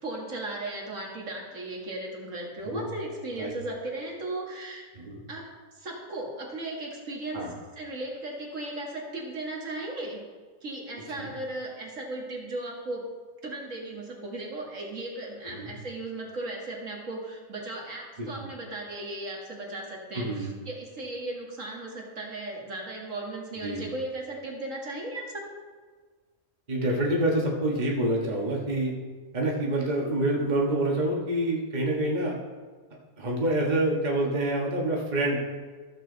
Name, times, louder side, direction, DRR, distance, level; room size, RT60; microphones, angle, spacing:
voice 1, 0.0-4.9 5.3-5.5 5.8-7.5 7.8-10.2 10.6-13.0 13.4-25.4, right 2 dB, 65° right, -1 dB, 2.2 m, -36 dB
voice 2, 20.1-20.5 23.6-23.9 26.7-28.9 29.3-32.4 33.2-35.4, right 1 dB, 35° right, -2 dB, 1.6 m, -27 dB
14.0 x 7.4 x 4.0 m, 1.5 s
omnidirectional pair, 1.4 m